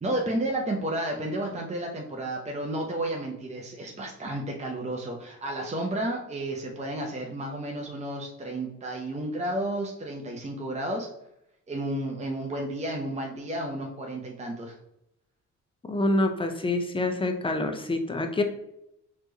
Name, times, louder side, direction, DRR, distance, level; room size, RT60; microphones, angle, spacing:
voice 1, 0.0-11.1 11.7-14.7, right 1 dB, 20° right, 1 dB, 0.7 m, -32 dB
voice 2, 15.9-18.4, left 2 dB, 15° left, 5 dB, 0.6 m, -26 dB
4.3 x 3.1 x 2.9 m, 0.82 s
cardioid pair, 90°, 30 cm